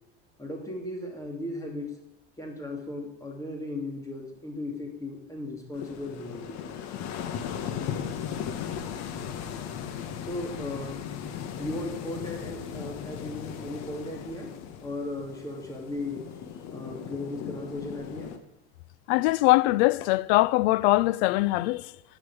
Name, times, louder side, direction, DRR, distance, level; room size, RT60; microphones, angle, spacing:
voice 1, 0.4-2.0 2.4-6.7 10.2-11.0 11.6-16.3 16.7-18.3, left 2 dB, 10° left, 2.8 m, -36 dB
sound 1, 5.7-18.4, left 8 dB, 50° left, 1.4 m, -37 dB
voice 2, 19.1-21.9, left 19 dB, 65° left, 0.6 m, -22 dB
13.0 x 6.1 x 8.6 m
supercardioid pair, 130°, 34 cm